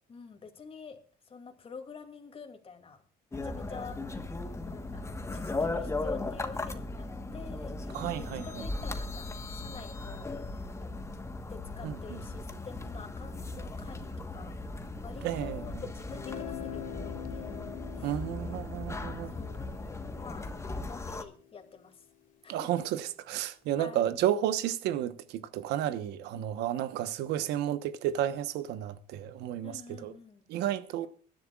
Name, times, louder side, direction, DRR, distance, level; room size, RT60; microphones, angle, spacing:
voice 1, 0.1-3.0 3.3-4.0 4.7-11.0 11.5-17.6 18.0-18.2 19.3-19.8 20.2-20.5 20.8-22.1 22.4-22.9 23.8-24.1 26.3-26.8 29.6-30.4, left 5 dB, 35° left, 2.5 m, -48 dB
sound 1, 3.3-21.2, left 2 dB, 15° left, 1.3 m, -37 dB
voice 2, 7.9-8.5 11.8-12.2 15.2-15.6 18.0-19.3 22.5-30.1 30.5-31.1, right 11 dB, 85° right, 1.0 m, -32 dB
Guitar, 16.1-21.8, left 10 dB, 55° left, 2.8 m, -45 dB
24.0 x 11.0 x 2.4 m
cardioid pair, 110°, 17 cm